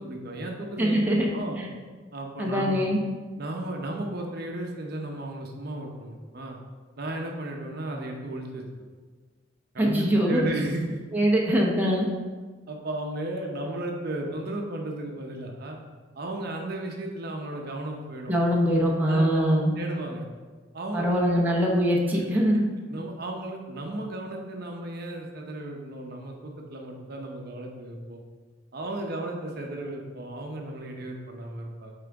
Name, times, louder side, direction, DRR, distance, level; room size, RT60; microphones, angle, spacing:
voice 1, 0.0-1.6 2.1-2.8 3.4-6.6 7.0-8.6 9.7-11.0 12.7-15.8 16.1-18.3 19.0-20.2 20.7-21.4 22.1-22.4 22.9-28.2 28.7-31.9, right 1 dB, 55° right, 1 dB, 0.8 m, -34 dB
voice 2, 0.8-1.3 1.6-1.7 2.4-3.0 9.8-10.4 11.1-12.1 18.3-19.7 20.9-22.6, equal, 10° right, -3 dB, 0.9 m, -23 dB
8.8 x 3.8 x 3.5 m, 1.4 s
head